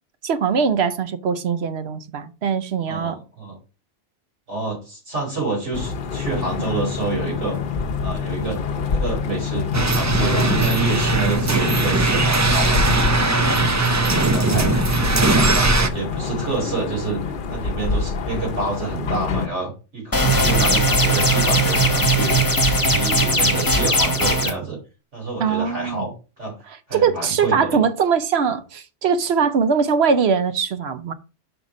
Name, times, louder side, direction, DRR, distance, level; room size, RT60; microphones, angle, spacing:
voice 1, 0.2-3.2 25.4-26.0 26.7-31.1, right 6 dB, 65° right, 0.9 m, -21 dB
voice 2, 2.9-3.6 4.5-7.6 8.0-13.3 13.9-17.2 17.5-22.4 22.6-24.8 25.1-26.5 26.9-27.8, right 3 dB, 85° right, 4.7 m, -28 dB
sound 1, 5.7-19.5, left 5 dB, 55° left, 0.8 m, -26 dB
sound 2, 9.7-15.9, right 2 dB, 30° right, 0.3 m, -19 dB
sound 3, 20.1-24.5, right 1 dB, 20° left, 1.0 m, -18 dB
5.9 x 5.4 x 4.8 m
omnidirectional pair, 1.2 m